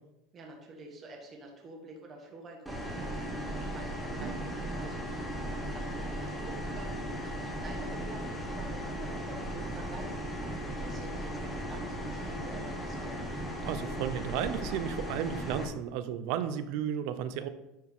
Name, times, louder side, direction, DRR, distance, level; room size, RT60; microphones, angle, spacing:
voice 1, 0.3-13.3, right 2 dB, 25° right, 1 dB, 1.4 m, -48 dB
sound 1, 2.7-15.7, equal, ahead, 1.3 m, -37 dB
voice 2, 13.6-17.5, right 9 dB, 60° right, 12 dB, 0.6 m, -33 dB
10.5 x 4.6 x 3.6 m, 0.93 s
cardioid pair, 160°, 0 cm